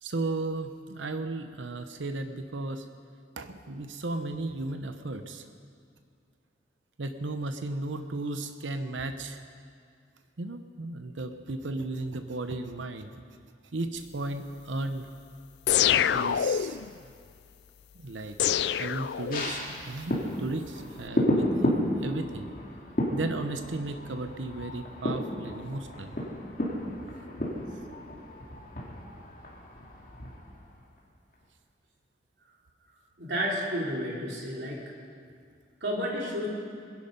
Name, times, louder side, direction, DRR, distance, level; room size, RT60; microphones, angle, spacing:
voice 1, 0.0-2.9 3.4-5.4 7.0-9.4 10.4-13.1 13.7-15.1 16.1-16.8 17.9-18.4 18.6-22.5 23.1-26.2, right 2 dB, 90° right, 8 dB, 0.8 m, -35 dB
sound 1, 15.7-16.9 18.4-19.7, left 9 dB, 65° left, 0.3 m, -26 dB
sound 2, 19.3-31.0 31.3-31.4, left 1 dB, 50° left, 2.5 m, -32 dB
voice 2, 33.2-34.8 35.8-36.5, equal, 65° right, -3 dB, 3.3 m, -31 dB
21.5 x 11.0 x 5.3 m, 2.3 s
head